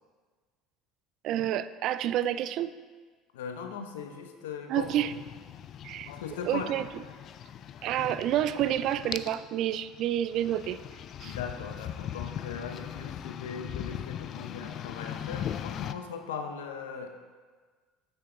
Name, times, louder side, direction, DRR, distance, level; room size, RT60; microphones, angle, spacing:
voice 1, 1.2-2.7 4.7-5.1 5.8-6.1 6.5-6.8 7.8-10.8 11.2-11.4, right 11 dB, 60° right, 14 dB, 0.3 m, -29 dB
voice 2, 3.3-4.9 6.0-6.8 11.2-17.1, left 6 dB, 85° left, 5 dB, 0.8 m, -39 dB
sound 1, 4.8-15.9, left 9 dB, 50° left, 0.4 m, -40 dB
8.5 x 6.7 x 3.9 m, 1.5 s
hypercardioid pair, 80°, 0 cm